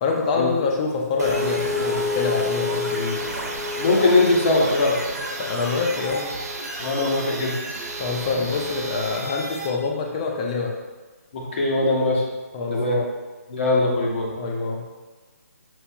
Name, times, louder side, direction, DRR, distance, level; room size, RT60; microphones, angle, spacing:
voice 1, 0.0-3.2 5.4-6.3 8.0-10.7 12.5-13.1 14.3-14.8, left 4 dB, 25° left, 0 dB, 0.5 m, -26 dB
sound 1, 1.2-9.7, left 1 dB, 75° right, 0.9 m, -29 dB
voice 2, 3.8-5.0 6.8-7.5 11.3-12.2 12.7-13.0 13.5-14.3, left 2 dB, 45° left, -3 dB, 1.0 m, -21 dB
6.0 x 2.6 x 2.2 m, 1.3 s
figure-of-eight pair, 155°, 9 cm